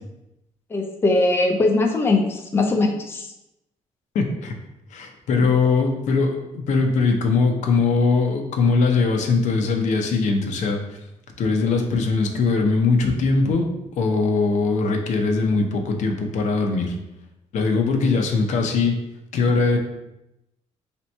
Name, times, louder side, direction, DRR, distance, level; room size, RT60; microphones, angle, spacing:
voice 1, 0.7-3.3 5.3-5.5, left 2 dB, 20° left, 2 dB, 0.5 m, -21 dB
voice 2, 4.1-4.5 4.9-10.8 11.4-13.7 14.0-16.9 17.5-18.9 19.3-19.8, left 4 dB, 75° left, 3 dB, 0.6 m, -21 dB
3.3 x 2.9 x 4.3 m, 0.87 s
cardioid pair, 130°, 13 cm